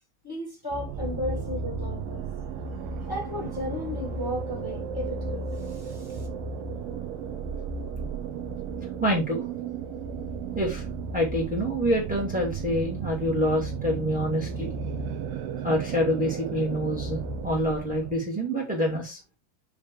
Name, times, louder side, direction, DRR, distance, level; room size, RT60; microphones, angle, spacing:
voice 1, 0.2-2.2 3.1-6.3, equal, 10° left, 1.2 m, -34 dB
sound 1, 0.7-18.1, right 5 dB, 85° right, 1.9 m, -34 dB
voice 2, 9.0-9.4 10.5-10.8 11.1-14.7 15.6-19.2, equal, 10° right, 0.3 m, -26 dB
10.0 x 3.4 x 4.8 m
omnidirectional pair, 5.8 m